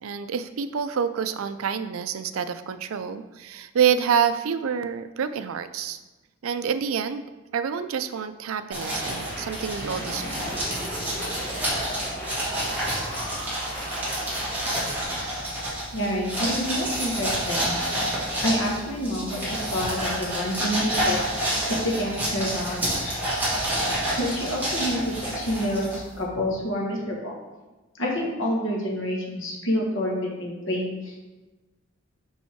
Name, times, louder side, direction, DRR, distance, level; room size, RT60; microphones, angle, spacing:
voice 1, 0.0-6.0 6.4-7.2 7.5-10.5, right 7 dB, 90° right, 12 dB, 0.4 m, -27 dB
sound 1, 8.7-26.2, right 1 dB, 10° right, 2.2 m, -29 dB
sound 2, 8.8-15.0, equal, 10° left, 1.5 m, -39 dB
sound 3, 9.7-15.7, equal, 25° left, 1.9 m, -41 dB
voice 2, 15.9-17.7 18.4-21.2 21.7-23.1 24.2-27.4 28.0-31.2, equal, 65° left, -1 dB, 1.6 m, -28 dB
5.6 x 5.5 x 4.5 m, 1.2 s
head